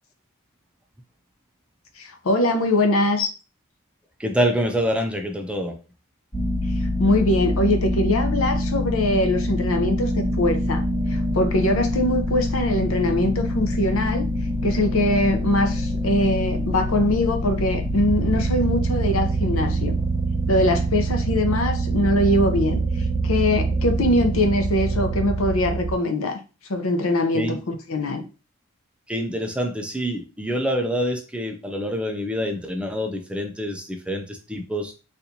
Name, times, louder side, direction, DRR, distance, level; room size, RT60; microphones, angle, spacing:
voice 1, 2.0-3.3 7.0-10.8 11.1-14.3 14.6-20.0 20.5-22.8 23.2-26.4 26.7-28.2, left 1 dB, 70° left, 6 dB, 0.7 m, -22 dB
voice 2, 4.2-5.7 27.3-27.6 29.1-34.9, equal, 5° right, 3 dB, 0.4 m, -26 dB
sound 1, 6.3-25.9, right 1 dB, 20° left, 1.3 m, -25 dB
4.2 x 2.5 x 2.7 m, 0.32 s
head